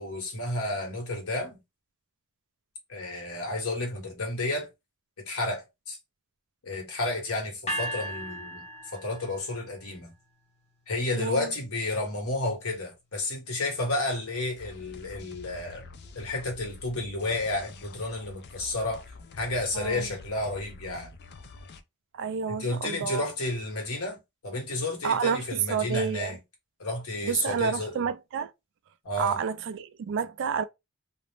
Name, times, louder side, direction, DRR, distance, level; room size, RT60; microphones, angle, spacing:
voice 1, 0.0-1.6 2.9-4.7 5.2-6.0 6.6-8.7 8.9-10.1 10.9-15.9 16.1-19.0 19.3-21.2 22.5-24.2 24.4-26.4 26.8-28.1 29.0-29.4, left 2 dB, 85° left, 1.1 m, -31 dB
sound 1, 7.7-9.8, equal, 30° left, 0.7 m, -36 dB
voice 2, 11.1-11.5 19.7-20.1 22.2-23.2 25.0-26.3 27.2-28.5 29.2-30.6, right 7 dB, 60° right, 0.3 m, -29 dB
sound 2, 14.6-21.8, left 3 dB, 50° left, 0.4 m, -47 dB
2.5 x 2.0 x 3.2 m
head